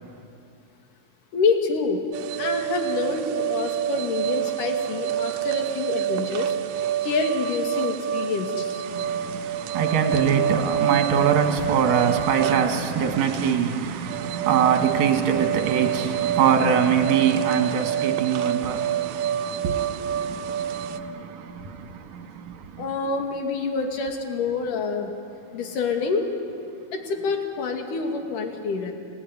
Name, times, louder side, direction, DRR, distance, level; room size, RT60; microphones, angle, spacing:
voice 1, 1.3-2.0 2.4-6.5 7.0-8.8 22.8-25.1 25.5-26.3 26.9-28.9, left 4 dB, 60° left, 3.7 m, -27 dB
sound 1, 2.1-21.0, right 10 dB, 90° right, 2.8 m, -27 dB
voice 2, 8.9-22.8, right 7 dB, 55° right, 3.1 m, -24 dB
29.0 x 20.0 x 9.7 m
omnidirectional pair, 4.4 m